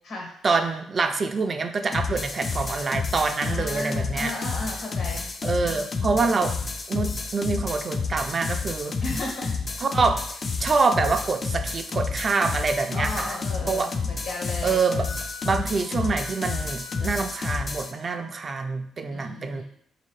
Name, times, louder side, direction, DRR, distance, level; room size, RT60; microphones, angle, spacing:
voice 1, 0.4-4.3 5.4-6.5 6.9-9.0 9.8-13.4 13.7-13.9 14.6-15.1 15.4-19.6, right 4 dB, 40° right, 7 dB, 0.3 m, -26 dB
sound 1, 1.9-17.9, left 4 dB, 35° left, 0.3 m, -30 dB
voice 2, 3.5-5.3 5.6-6.4 9.0-9.8 12.9-14.8 19.1-19.6, left 2 dB, 75° left, -1 dB, 1.5 m, -35 dB
Wind instrument woodwind instrument, 12.5-18.3, left 2 dB, 65° right, 0.7 m, -45 dB
3.8 x 2.7 x 3.1 m, 0.66 s
cardioid pair, 90°, 0 cm